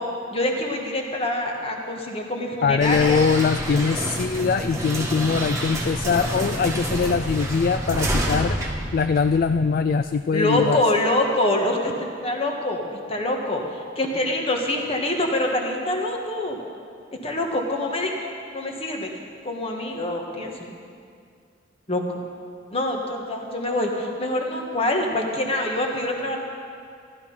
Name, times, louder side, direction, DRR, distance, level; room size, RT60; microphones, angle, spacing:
voice 1, 0.3-3.2 10.3-11.9 12.2-13.6 13.9-16.6 17.2-19.1 19.4-20.7 21.9-22.0 22.7-26.4, left 1 dB, 30° left, 1 dB, 1.5 m, -25 dB
voice 2, 2.6-8.6 8.9-10.8, left 5 dB, 50° left, 10 dB, 0.3 m, -22 dB
sound 1, 2.8-9.8, right 1 dB, 15° right, 1.6 m, -28 dB
14.5 x 12.0 x 5.5 m, 2.3 s
head